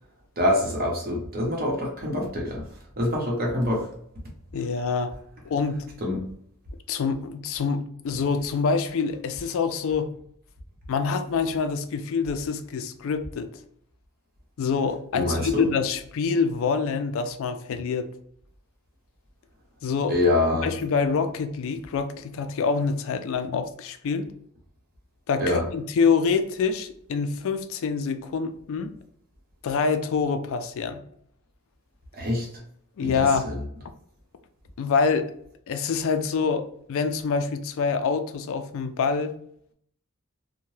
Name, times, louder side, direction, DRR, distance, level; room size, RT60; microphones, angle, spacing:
voice 1, 0.4-2.6 3.0-3.9 6.0-6.2 15.1-15.6 20.1-20.7 25.4-25.6 32.1-32.5 33.0-33.5, left 1 dB, 45° right, -1 dB, 0.8 m, -25 dB
voice 2, 4.5-5.1 5.5-5.8 6.9-10.1 10.9-13.5 14.6-18.1 19.8-20.1 20.6-24.3 25.3-28.9 29.6-31.0 33.0-33.5 34.8-35.3 35.7-39.3, left 5 dB, 65° left, 9 dB, 0.3 m, -26 dB
2.7 x 2.1 x 3.1 m, 0.67 s
head